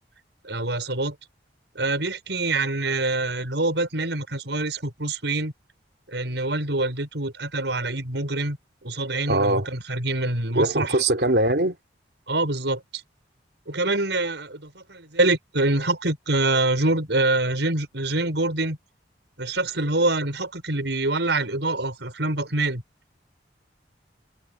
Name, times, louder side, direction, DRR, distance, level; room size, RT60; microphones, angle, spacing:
voice 1, 0.4-1.1 1.7-5.5 6.1-8.6 8.8-11.0 12.3-13.0 13.7-18.8 19.4-22.8, right 2 dB, 80° right, 5.9 m, -25 dB
voice 2, 9.3-9.7 10.5-11.7, right 1 dB, 65° right, 2.8 m, -21 dB
head